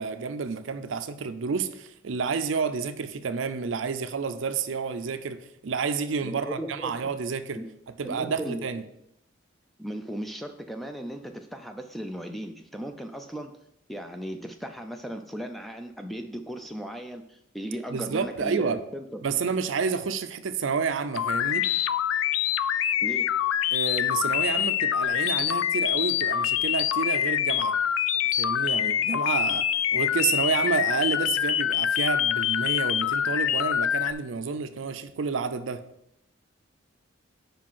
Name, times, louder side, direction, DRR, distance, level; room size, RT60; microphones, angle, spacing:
voice 1, 0.0-7.6 8.0-8.8 17.9-18.8 19.2-21.7 23.7-27.7 28.4-29.6 29.9-35.8, right 5 dB, 70° right, 0.5 m, -29 dB
voice 2, 6.2-7.1 7.6-7.7 8.0-8.6 9.8-13.5 13.9-19.2 23.0-23.3, right 1 dB, ahead, 0.4 m, -36 dB
sound 1, 21.2-34.1, left 10 dB, 80° left, 0.3 m, -25 dB
5.2 x 5.0 x 5.5 m
head